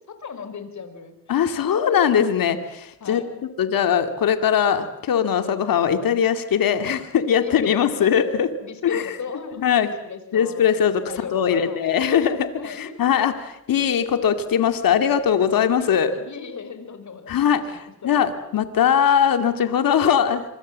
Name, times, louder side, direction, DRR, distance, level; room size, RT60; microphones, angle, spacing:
voice 1, 0.1-1.3 1.6-1.9 3.0-3.4 7.3-8.3 8.6-10.7 11.1-11.9 12.6-13.0 15.7-18.2, left 5 dB, 55° left, 9 dB, 5.1 m, -37 dB
voice 2, 1.3-3.2 3.6-8.5 8.8-9.1 9.6-9.9 10.3-11.0 11.3-16.1 17.3-17.8 18.0-20.4, left 8 dB, 75° left, 8 dB, 2.5 m, -20 dB
26.0 x 25.0 x 7.6 m, 0.88 s
cardioid pair, 80°, 35 cm